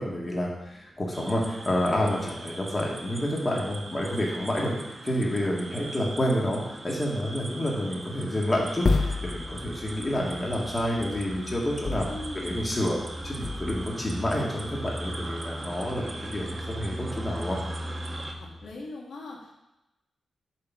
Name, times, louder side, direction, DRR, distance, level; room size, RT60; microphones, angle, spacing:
voice 1, 0.0-4.7 5.0-12.1 12.4-17.6, left 1 dB, 25° left, -3 dB, 1.9 m, -29 dB
sound 1, 0.8-1.0 1.2-4.4 6.3-6.5 7.2-18.7, equal, 10° right, 0.5 m, -40 dB
sound 2, 1.1-18.3, right 2 dB, 30° right, 0.9 m, -41 dB
sound 3, 8.8-10.0 11.8-12.8 13.2-13.8, left 3 dB, 40° left, 0.5 m, -29 dB
voice 2, 12.1-12.6 18.4-19.5, left 2 dB, 85° left, -2 dB, 1.6 m, -40 dB
8.3 x 4.0 x 5.9 m, 0.95 s
wide cardioid pair, 110°, 0 cm